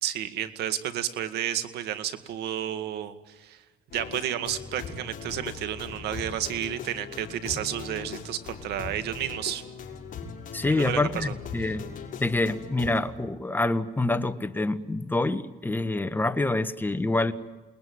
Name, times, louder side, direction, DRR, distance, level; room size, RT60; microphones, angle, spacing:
voice 1, 0.0-3.6 3.9-9.6 10.7-11.7, right 11 dB, 80° right, 10 dB, 2.1 m, -32 dB
sound 1, 3.9-13.0, left 6 dB, 50° left, 5.5 m, -40 dB
voice 2, 10.5-11.8 12.2-17.3, left 2 dB, 10° left, 11 dB, 1.3 m, -26 dB
28.5 x 20.0 x 9.6 m, 1.2 s
cardioid pair, 110°, 17 cm